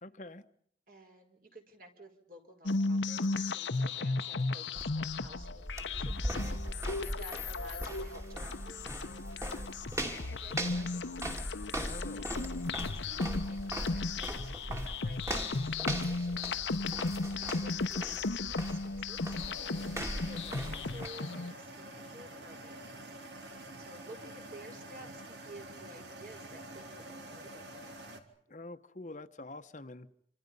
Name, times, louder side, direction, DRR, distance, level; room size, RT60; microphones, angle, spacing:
voice 1, 0.0-0.4 11.7-12.3 28.5-30.1, left 2 dB, 40° left, 9 dB, 1.0 m, -46 dB
voice 2, 0.9-11.2 12.2-12.5 12.8-19.4 20.0-23.2 23.8-28.0, right 1 dB, 50° right, 4 dB, 5.0 m, -53 dB
sound 1, 2.7-21.5, left 3 dB, 85° left, 0.9 m, -35 dB
sound 2, 4.8-21.1, equal, 15° right, 2.3 m, -40 dB
sound 3, 19.4-28.2, right 1 dB, 70° right, 3.3 m, -48 dB
28.0 x 27.0 x 5.5 m, 0.65 s
head